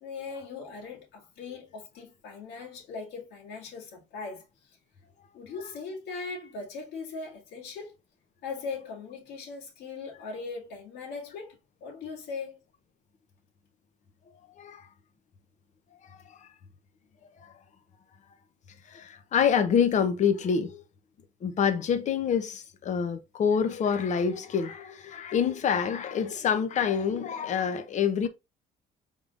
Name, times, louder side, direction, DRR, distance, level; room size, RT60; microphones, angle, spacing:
voice 1, 0.0-4.8 5.3-7.9 8.4-11.6 11.8-12.6, left 4 dB, 80° left, 2.2 m, -39 dB
voice 2, 18.9-20.8 21.4-28.3, left 7 dB, 45° left, 0.7 m, -26 dB
4.9 x 3.6 x 2.5 m
cardioid pair, 110°, 17 cm